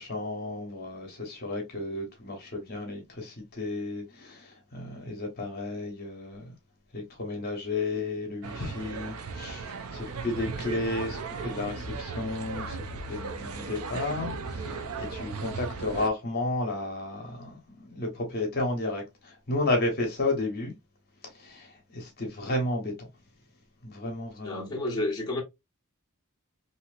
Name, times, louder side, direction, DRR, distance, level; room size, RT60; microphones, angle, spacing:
voice 1, 0.0-6.5 6.9-20.7 21.3-23.1 23.8-24.7, left 2 dB, 45° left, 0.9 m, -33 dB
sound 1, 8.4-16.1, right 4 dB, 75° right, 0.5 m, -36 dB
voice 2, 24.4-25.4, left 2 dB, 15° left, 0.9 m, -30 dB
2.8 x 2.8 x 2.4 m
head